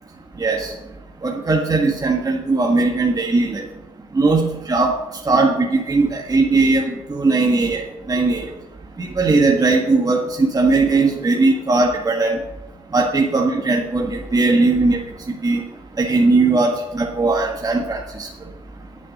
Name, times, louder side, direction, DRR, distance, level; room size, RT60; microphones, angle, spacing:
voice 1, 0.4-0.7 1.2-3.6 4.1-4.9 5.3-8.5 9.0-12.4 12.9-15.0 15.4-15.6 16.0-18.3, right 3 dB, 25° right, -1 dB, 1.7 m, -18 dB
9.2 x 8.3 x 6.7 m, 1.0 s
supercardioid pair, 60°, 15 cm